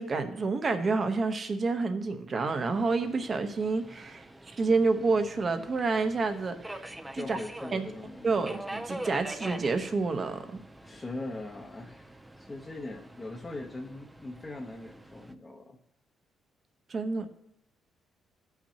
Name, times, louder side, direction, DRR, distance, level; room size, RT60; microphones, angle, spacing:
voice 1, 0.0-6.9 7.1-7.4 7.7-7.8 8.2-10.4 16.9-17.3, right 3 dB, 40° right, 8 dB, 1.0 m, -29 dB
Subway metro underground, 2.5-15.3, right 1 dB, 10° right, 0.6 m, -45 dB
voice 2, 7.1-8.5 10.8-15.8, left 2 dB, 25° left, 0 dB, 0.9 m, -41 dB
15.0 x 5.9 x 2.9 m, 0.82 s
cardioid pair, 90°, 0 cm